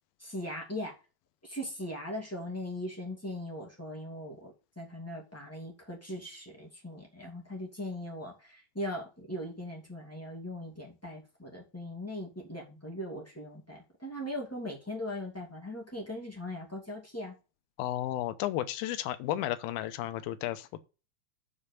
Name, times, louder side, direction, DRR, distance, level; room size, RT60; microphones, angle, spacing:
voice 1, 0.2-0.9 1.4-17.3, left 1 dB, 15° left, 0.5 m, -39 dB
voice 2, 17.8-20.8, left 13 dB, 85° left, 2.2 m, -33 dB
7.1 x 5.1 x 6.8 m
omnidirectional pair, 5.0 m